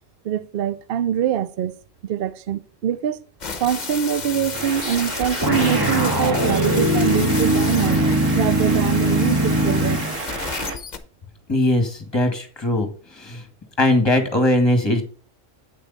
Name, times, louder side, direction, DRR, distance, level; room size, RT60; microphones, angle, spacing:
voice 1, 0.2-1.7 2.0-3.2 3.6-8.0 8.3-10.0, right 9 dB, 60° right, 0.7 m, -24 dB
sound 1, 3.4-11.0, left 5 dB, 40° left, 0.9 m, -32 dB
sound 2, 4.5-10.8, right 4 dB, 90° right, 1.5 m, -32 dB
sound 3, 5.4-10.1, right 1 dB, 20° right, 1.2 m, -20 dB
voice 2, 11.5-12.9 13.1-13.4 13.8-15.0, left 1 dB, 20° left, 1.9 m, -19 dB
8.6 x 6.6 x 4.0 m
omnidirectional pair, 1.3 m